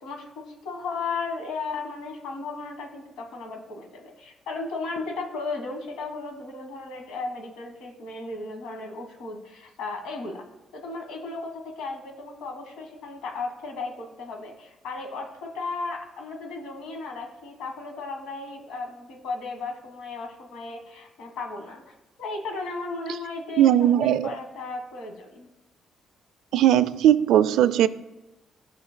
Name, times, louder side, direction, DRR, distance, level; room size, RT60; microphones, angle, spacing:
voice 1, 0.0-10.5 10.7-21.8 22.2-25.5, left 3 dB, 90° left, 3 dB, 1.4 m, -35 dB
voice 2, 23.6-24.3 26.5-27.9, right 11 dB, 85° right, 15 dB, 0.3 m, -18 dB
14.0 x 5.8 x 2.2 m, 1.0 s
cardioid pair, 90°, 0 cm